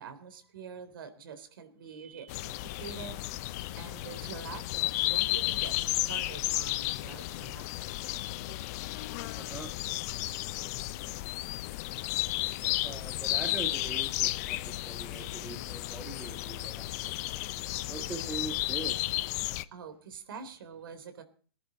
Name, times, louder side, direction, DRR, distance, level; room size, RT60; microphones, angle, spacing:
voice 1, 0.0-3.4 3.8-7.9 19.7-21.2, right 6 dB, 60° right, 9 dB, 3.5 m, -46 dB
voice 2, 1.9-2.3 2.7-2.8 3.6-3.9 8.5-8.6 9.4-9.7 12.4-17.1 17.9-19.1, right 4 dB, 10° right, 5 dB, 1.7 m, -43 dB
sound 1, 2.3-19.6, left 18 dB, 40° left, 0.8 m, -33 dB
20.0 x 11.0 x 4.2 m, 0.41 s
hypercardioid pair, 125°, 13 cm